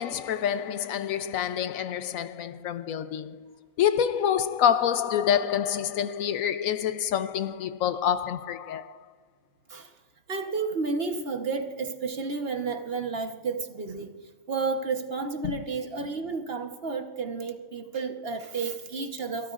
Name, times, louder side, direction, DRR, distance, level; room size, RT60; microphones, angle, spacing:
voice 1, 0.0-9.0 15.4-15.6, left 9 dB, 75° left, 1.0 m, -27 dB
voice 2, 10.3-14.1 14.5-19.5, right 4 dB, 45° right, 1.3 m, -31 dB
28.5 x 13.0 x 2.5 m
omnidirectional pair, 1.4 m